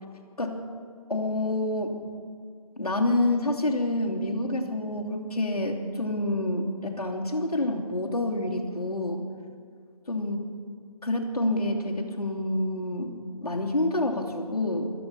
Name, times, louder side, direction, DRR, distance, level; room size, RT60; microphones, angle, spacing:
voice 1, 1.1-2.0 2.8-9.2 10.1-10.4 11.0-13.1 13.4-14.9, left 1 dB, 80° left, 0 dB, 2.8 m, -27 dB
16.5 x 13.5 x 5.4 m, 2.3 s
figure-of-eight pair, 165°, 19 cm